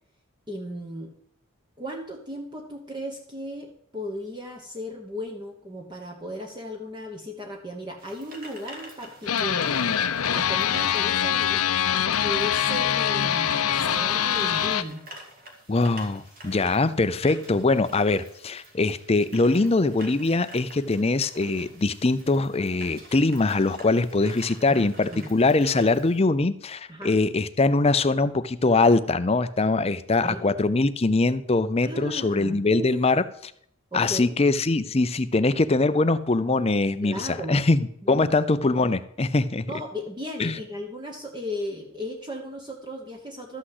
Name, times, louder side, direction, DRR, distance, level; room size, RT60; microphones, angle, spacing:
voice 1, 0.5-1.1 1.8-9.8 10.3-11.6 12.2-15.0 24.7-25.3 26.9-27.2 30.2-30.5 31.8-32.9 33.9-34.4 37.0-37.7 38.0-38.3 39.7-43.6, equal, 20° right, 2 dB, 1.2 m, -36 dB
sound 1, 8.0-26.2, right 1 dB, 40° right, 2.2 m, -47 dB
sound 2, 9.3-14.8, left 9 dB, 80° left, 0.7 m, -24 dB
voice 2, 15.7-33.5 33.9-39.7 40.4-40.5, left 3 dB, 25° left, 13 dB, 0.5 m, -22 dB
13.0 x 6.2 x 7.8 m, 0.68 s
head